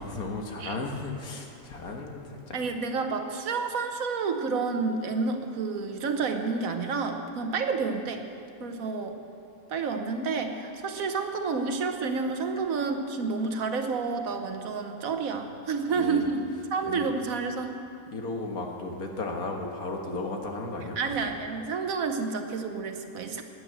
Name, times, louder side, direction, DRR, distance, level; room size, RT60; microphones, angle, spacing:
voice 1, 0.0-2.6 16.0-16.3 16.9-17.1 18.1-21.3, left 2 dB, 85° left, 2 dB, 2.0 m, -35 dB
voice 2, 2.5-8.2 8.6-9.2 9.7-17.8 21.0-23.4, right 4 dB, 70° right, 6 dB, 1.5 m, -30 dB
13.0 x 10.0 x 7.9 m, 2.5 s
omnidirectional pair, 1.5 m